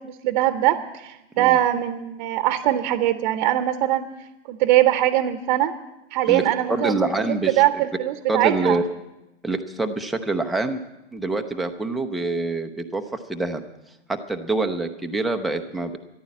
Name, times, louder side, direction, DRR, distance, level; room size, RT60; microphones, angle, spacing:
voice 1, 0.0-4.0 4.5-5.7 6.1-7.1 7.5-8.8, right 14 dB, 35° right, 10 dB, 0.8 m, -21 dB
voice 2, 6.7-7.6 8.3-8.8 9.4-10.8 11.1-13.0 13.3-13.6 14.1-15.9, right 2 dB, ahead, 4 dB, 0.5 m, -25 dB
13.5 x 11.0 x 8.4 m, 0.96 s
figure-of-eight pair, 115°, 34 cm